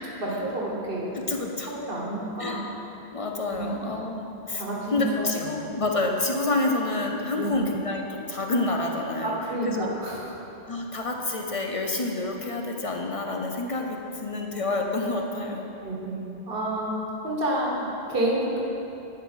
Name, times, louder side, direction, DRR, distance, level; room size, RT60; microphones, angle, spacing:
voice 1, 0.2-1.1 1.7-2.6 3.5-3.7 4.5-5.7 7.4-7.6 9.2-10.3 15.8-18.6, right 1 dB, 55° right, -3 dB, 1.6 m, -29 dB
voice 2, 1.1-1.7 2.4-2.6 3.1-4.6 4.9-9.3 9.7-9.9 10.7-15.6, left 2 dB, 40° left, 1 dB, 0.6 m, -28 dB
10.5 x 5.4 x 5.1 m, 3.0 s
omnidirectional pair, 1.1 m